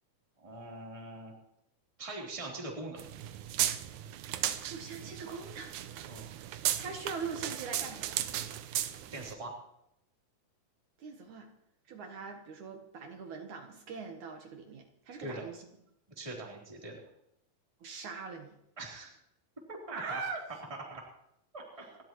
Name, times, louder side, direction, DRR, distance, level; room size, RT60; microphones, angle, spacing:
voice 1, 0.4-1.3 2.0-3.0 6.1-6.3 9.1-9.5 15.2-15.5 16.2-17.0 18.8-19.1 19.7-20.2 20.7-21.0 21.5-21.9, right 2 dB, 10° right, -3 dB, 3.1 m, -42 dB
sound 1, 3.0-9.3, right 12 dB, 80° right, 1.8 m, -36 dB
voice 2, 4.6-6.2 6.8-8.2 11.0-11.5 11.9-15.6 17.8-18.6 19.9-20.4, right 5 dB, 60° right, 3 dB, 2.4 m, -42 dB
29.0 x 12.5 x 3.1 m, 0.78 s
omnidirectional pair, 4.4 m